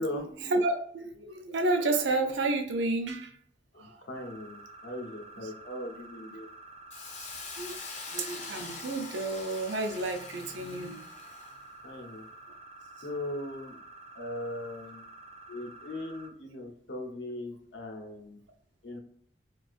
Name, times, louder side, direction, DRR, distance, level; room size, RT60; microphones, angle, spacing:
voice 1, 0.0-3.4 3.8-4.0 5.4-5.5 7.2-7.3 7.6-7.8 8.1-11.1, right 2 dB, 90° right, 5 dB, 0.5 m, -31 dB
voice 2, 3.7-6.5 11.8-12.2 13.0-13.8 14.1-15.0 15.5-18.4 18.8-19.0, left 1 dB, 75° left, 2 dB, 0.7 m, -39 dB
sound 1, 4.1-16.3, right 2 dB, 35° right, 0.3 m, -49 dB
Hiss, 6.9-11.6, left 4 dB, 40° left, 0.5 m, -44 dB
2.4 x 2.3 x 2.4 m, 0.64 s
head